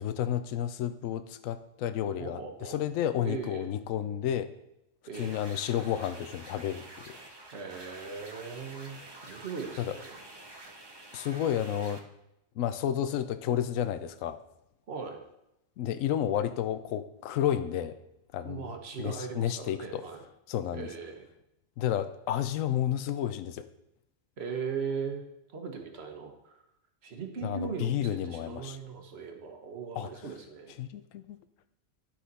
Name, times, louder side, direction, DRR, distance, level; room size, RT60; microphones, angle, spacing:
voice 1, 0.0-4.5 5.2-7.2 9.8-10.0 11.1-12.0 12.6-14.4 15.8-18.0 18.3-18.7 19.0-20.1 20.5-20.9 21.8-23.7 27.4-28.8 30.0-30.1 30.8-31.4, left 10 dB, 85° left, 12 dB, 1.0 m, -31 dB
voice 2, 2.2-2.8 3.2-3.7 5.1-5.4 7.5-10.2 14.9-15.2 18.4-20.2 20.7-21.3 24.4-25.2 25.5-26.6 27.0-30.7, right 6 dB, 55° right, 4 dB, 1.4 m, -39 dB
sound 1, 5.1-12.0, right 2 dB, 25° right, 0.7 m, -48 dB
12.0 x 5.8 x 4.1 m, 0.86 s
omnidirectional pair, 1.3 m